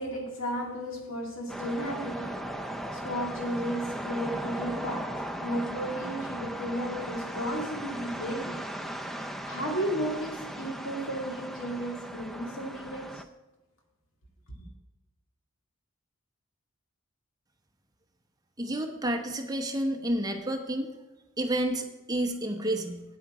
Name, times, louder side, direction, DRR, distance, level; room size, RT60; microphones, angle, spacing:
voice 1, 0.0-8.7 9.4-13.2 14.5-14.6, equal, 70° left, 2.2 m, -34 dB
sound 1, 1.5-13.2, right 1 dB, ahead, 0.5 m, -37 dB
voice 2, 18.6-20.9 21.4-23.0, right 1 dB, 20° right, 0.9 m, -30 dB
8.9 x 8.8 x 4.8 m
head